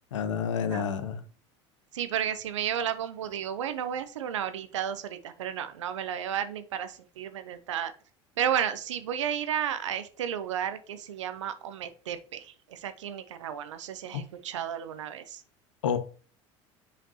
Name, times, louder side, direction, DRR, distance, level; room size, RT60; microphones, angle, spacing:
voice 1, 0.1-1.2 14.1-14.2 15.8-16.0, left 7 dB, 85° left, 0.8 m, -29 dB
voice 2, 1.9-7.9 8.4-15.4, right 9 dB, 85° right, 0.7 m, -33 dB
7.0 x 5.1 x 2.9 m
hypercardioid pair, 80°, 15 cm